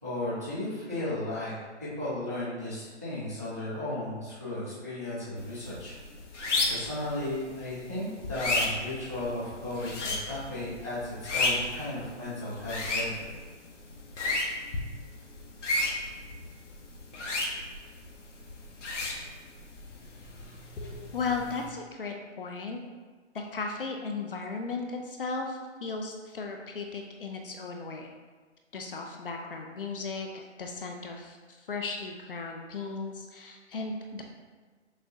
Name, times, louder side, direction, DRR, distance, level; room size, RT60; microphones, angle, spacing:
voice 1, 0.0-1.5 1.8-6.0 6.7-13.3, left 1 dB, 15° right, -11 dB, 0.4 m, -35 dB
sound 1, 5.4-21.7, left 2 dB, 75° left, 0.8 m, -34 dB
voice 2, 21.1-22.8 23.3-28.1 28.7-34.2, left 4 dB, 50° left, 2 dB, 0.5 m, -36 dB
6.0 x 2.1 x 2.7 m, 1.4 s
hypercardioid pair, 150°, 36 cm